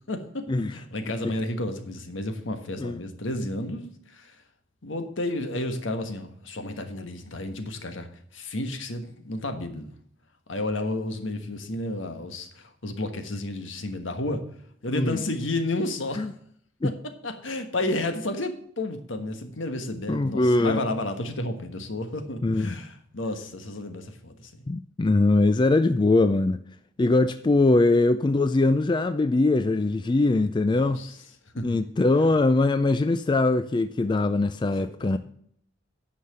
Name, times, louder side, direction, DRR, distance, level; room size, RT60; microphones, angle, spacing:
voice 1, 0.1-4.3 4.8-8.1 8.3-9.9 10.5-14.4 14.8-16.3 16.8-16.9 17.2-24.6 30.7-31.2 31.5-31.8 34.8-35.2, left 1 dB, 75° left, 1.4 m, -31 dB
voice 2, 20.1-20.8 22.4-22.7 24.7-26.6 27.0-31.0 31.6-35.2, left 2 dB, 25° left, 0.4 m, -22 dB
9.8 x 5.7 x 6.8 m
head